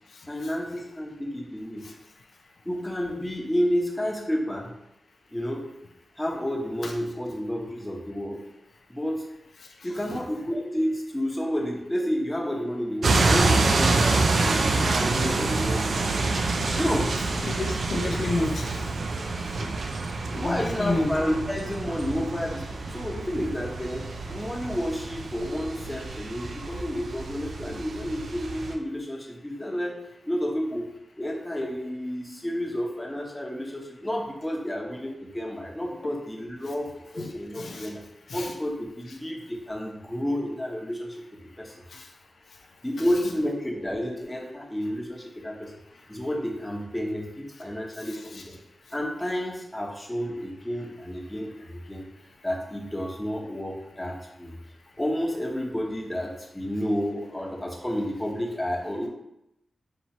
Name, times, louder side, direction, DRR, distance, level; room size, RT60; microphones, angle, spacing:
voice 1, 0.3-1.9 2.6-4.7 5.3-5.6 6.2-8.4 8.9-9.2 9.8-16.5 16.7-17.1 20.2-38.0 38.3-41.2 41.6-41.7 42.8-45.7 46.1-48.6 48.9-52.0 52.4-54.5 55.0-59.1, equal, 15° left, 0 dB, 1.0 m, -30 dB
voice 2, 9.8-10.2 17.4-18.9 19.6-19.7 20.4-21.1 37.2-37.3 37.6-37.9 38.3-38.5 41.9-42.1 48.0-48.4, left 2 dB, 80° left, 2 dB, 0.5 m, -30 dB
sound 1, 13.0-28.7, right 3 dB, 80° right, 0.4 m, -27 dB
5.5 x 2.7 x 3.0 m, 0.83 s
cardioid pair, 45°, 0 cm